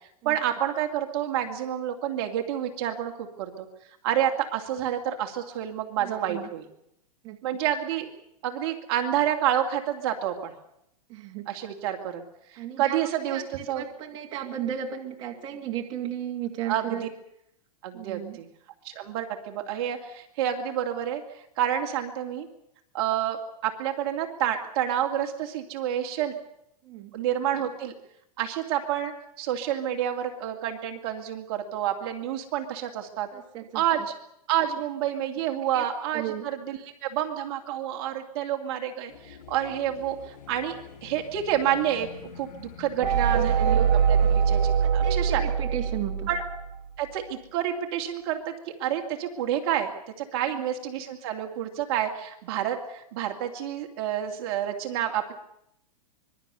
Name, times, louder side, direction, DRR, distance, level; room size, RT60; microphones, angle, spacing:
voice 1, 0.2-3.7 4.0-6.7 7.4-8.1 8.4-10.5 11.5-12.2 12.5-13.8 16.7-17.1 17.8-18.5 18.8-21.2 21.6-22.5 22.9-26.3 27.1-27.9 28.4-29.1 29.4-33.3 33.7-34.0 34.5-42.1 42.4-45.4 46.3-46.4 47.0-49.9 50.2-55.3, right 10 dB, 40° right, 3 dB, 2.5 m, -29 dB
voice 2, 6.0-6.5 7.2-7.4 11.1-11.5 12.6-17.1 17.9-18.4 26.8-27.1 33.3-33.8 35.7-35.8 36.1-36.5 44.8-46.3 50.5-50.6, right 10 dB, 20° right, 0 dB, 2.4 m, -35 dB
sound 1, 39.1-44.9, left 7 dB, 80° left, 4.7 m, -47 dB
sound 2, 43.0-46.8, right 7 dB, 80° right, 1.9 m, -23 dB
25.5 x 21.5 x 6.9 m, 0.78 s
supercardioid pair, 170°, 21 cm